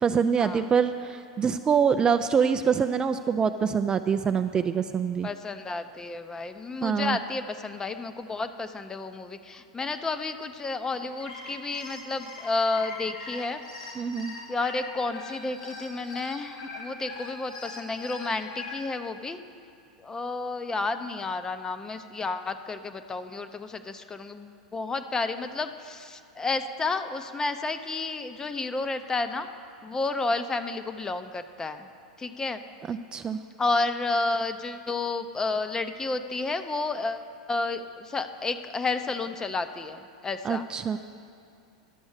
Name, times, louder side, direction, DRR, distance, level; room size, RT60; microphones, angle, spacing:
voice 1, 0.0-5.3 6.8-7.2 14.0-14.3 32.9-33.4 40.4-41.0, right 6 dB, 25° right, 9 dB, 0.3 m, -25 dB
voice 2, 5.2-13.9 14.5-19.4 20.0-29.5 29.8-31.9 32.2-32.6 33.6-40.6, left 3 dB, 15° left, 9 dB, 0.6 m, -31 dB
sound 1, 11.0-18.8, left 3 dB, 85° left, 2.1 m, -41 dB
11.0 x 6.2 x 7.2 m, 2.4 s
hypercardioid pair, 100°, 4 cm